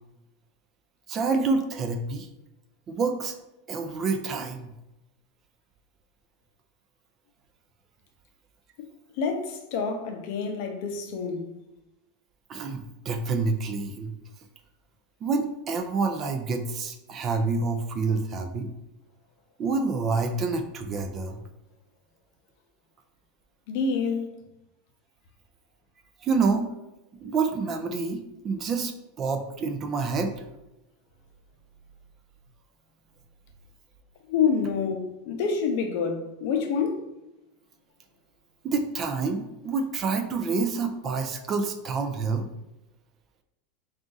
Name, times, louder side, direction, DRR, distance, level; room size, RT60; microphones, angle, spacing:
voice 1, 1.1-2.3 2.9-3.3 3.7-4.7 12.5-14.1 15.2-18.7 19.6-21.4 26.2-26.7 27.2-30.4 38.6-42.5, right 4 dB, 25° right, 0.4 m, -28 dB
voice 2, 9.2-11.5 23.7-24.3 34.3-37.1, left 5 dB, 55° left, 0.6 m, -27 dB
3.8 x 2.4 x 3.8 m
supercardioid pair, 160°, 0 cm